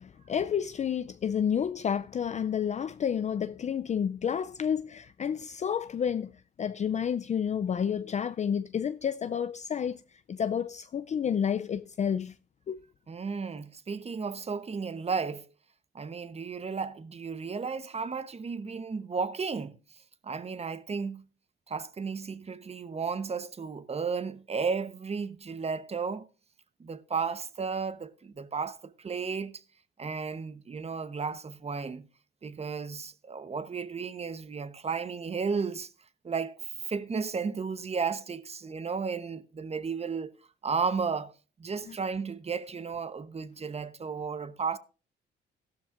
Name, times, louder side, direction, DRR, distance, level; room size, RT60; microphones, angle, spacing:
voice 1, 0.0-6.3 6.6-12.3 12.7-12.8 41.9-42.0, left 8 dB, 35° left, 0.4 m, -30 dB
voice 2, 13.1-15.5 15.9-19.8 20.2-21.3 21.7-26.3 26.8-29.6 30.0-32.1 32.4-35.9 36.2-36.6 36.9-40.3 40.6-41.3 41.6-44.8, right 5 dB, 30° right, 0.9 m, -33 dB
14.5 x 12.5 x 2.5 m
cardioid pair, 90°, 20 cm